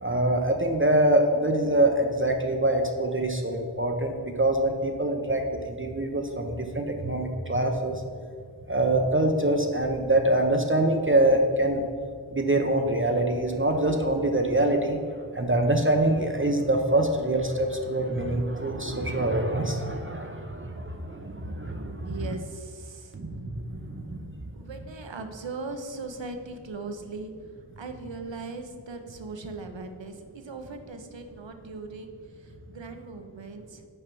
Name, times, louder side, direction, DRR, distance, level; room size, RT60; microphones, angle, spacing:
voice 1, 0.0-8.0 8.7-11.8 12.3-15.0 15.3-22.2 23.1-24.5, right 1 dB, 25° right, 3 dB, 0.6 m, -25 dB
voice 2, 22.0-23.2 24.5-27.3 27.8-33.8, right 3 dB, 70° right, 6 dB, 0.9 m, -39 dB
6.5 x 4.9 x 6.0 m, 2.1 s
wide cardioid pair, 45°, 47 cm